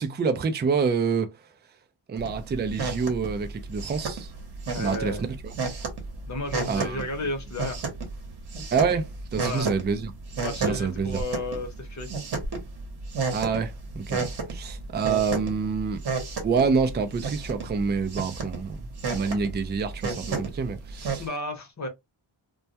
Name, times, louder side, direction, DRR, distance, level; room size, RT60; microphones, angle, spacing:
voice 1, 0.0-1.3 2.1-4.3 4.8-5.5 6.6-7.0 8.7-10.1 10.6-11.2 13.3-16.0 16.4-18.8 19.1-21.2, right 5 dB, 25° right, 0.3 m, -27 dB
sound 1, 2.2-21.2, right 4 dB, 50° right, 0.9 m, -33 dB
voice 2, 4.7-5.2 6.3-7.8 9.4-9.8 10.4-12.1 21.2-21.9, left 2 dB, 35° left, 0.8 m, -33 dB
2.2 x 2.1 x 2.7 m
wide cardioid pair, 110°, 50 cm